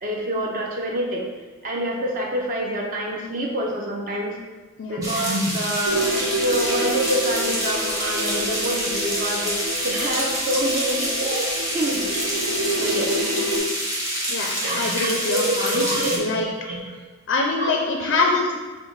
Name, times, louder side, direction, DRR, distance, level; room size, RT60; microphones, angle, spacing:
voice 1, 0.0-1.2 1.6-4.3 4.9-6.0 6.4-12.0 12.8-13.1 14.6-16.9 17.6-17.7 18.0-18.1, right 1 dB, 40° right, -1 dB, 0.5 m, -26 dB
sound 1, 5.0-16.2, equal, 15° right, 0.8 m, -27 dB
sound 2, 5.8-13.6, right 1 dB, 85° right, 1.1 m, -29 dB
voice 2, 14.3-16.5 17.3-18.6, left 3 dB, 60° left, 1 dB, 0.4 m, -24 dB
5.3 x 2.1 x 4.6 m, 1.3 s
head